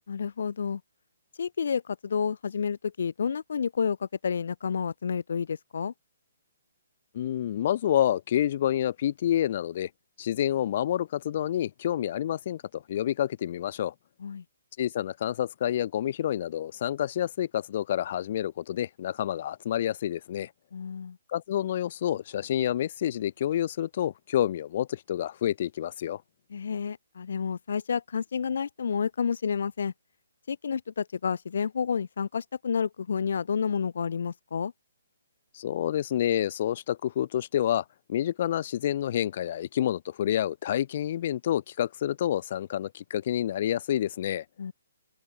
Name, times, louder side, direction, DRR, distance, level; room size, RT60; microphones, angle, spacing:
voice 1, 0.1-0.8 1.4-5.9 14.2-14.4 20.7-21.2 26.5-29.9 30.5-34.7 44.6-44.7, left 6 dB, 60° left, 0.6 m, -30 dB
voice 2, 7.1-9.9 10.2-13.9 14.8-20.5 21.3-26.2 35.5-44.4, left 11 dB, 45° left, 1.7 m, -28 dB
figure-of-eight pair, 135°, 0 cm